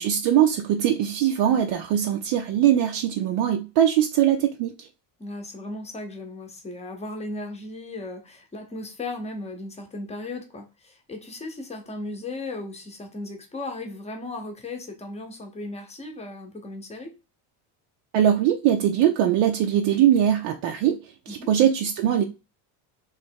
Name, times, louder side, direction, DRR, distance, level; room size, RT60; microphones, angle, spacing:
voice 1, 0.0-4.9 18.1-22.2, right 10 dB, 60° right, 0.6 m, -21 dB
voice 2, 5.2-17.1 21.3-21.5, left 2 dB, 15° left, 0.8 m, -36 dB
3.3 x 3.2 x 4.5 m
cardioid pair, 160°, 50 cm